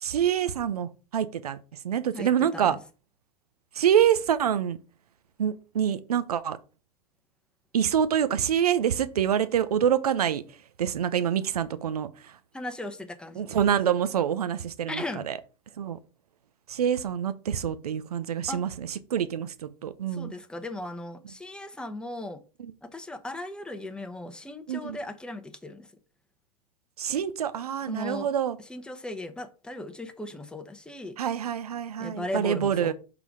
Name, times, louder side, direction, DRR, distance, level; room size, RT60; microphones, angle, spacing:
voice 1, 0.0-1.6 1.8-2.8 3.7-4.8 5.4-6.6 7.7-10.4 10.8-12.4 13.4-15.4 15.8-16.0 16.7-20.3 24.7-25.0 27.0-28.6 31.2-32.9, right 9 dB, 85° right, 0.6 m, -26 dB
voice 2, 2.1-2.8 12.5-13.4 14.9-15.2 18.5-18.6 20.1-22.4 22.8-25.9 27.9-28.3 28.6-31.2 32.0-32.9, left 2 dB, 5° left, 0.8 m, -37 dB
5.7 x 3.9 x 4.6 m
hypercardioid pair, 100°, 19 cm